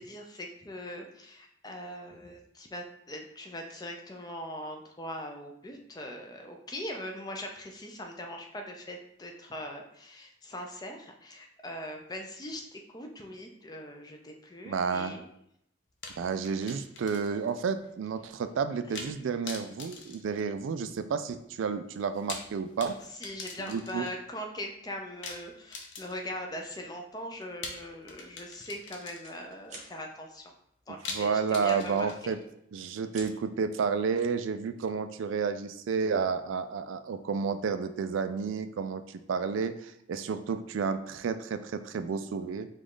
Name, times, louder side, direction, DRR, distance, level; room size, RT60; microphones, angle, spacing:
voice 1, 0.0-15.3 18.9-19.0 23.0-30.5 30.9-32.4, left 1 dB, 20° left, 2 dB, 0.5 m, -41 dB
voice 2, 14.6-15.2 16.2-23.0 23.7-24.1 31.1-32.4 32.7-42.7, right 5 dB, 85° right, 10 dB, 0.3 m, -31 dB
sound 1, 16.0-17.5 17.8-17.9 18.9-19.2 19.5-21.0 22.0-24.2 25.2-26.4 27.6-29.5 31.0-32.4, left 4 dB, 70° left, 0.7 m, -43 dB
sound 2, 27.3-27.6 28.0-28.2 28.5-29.4 29.6-29.9 31.5-32.3 32.6-33.3, right 3 dB, 40° right, 0.8 m, -49 dB
5.1 x 2.4 x 3.7 m, 0.74 s
head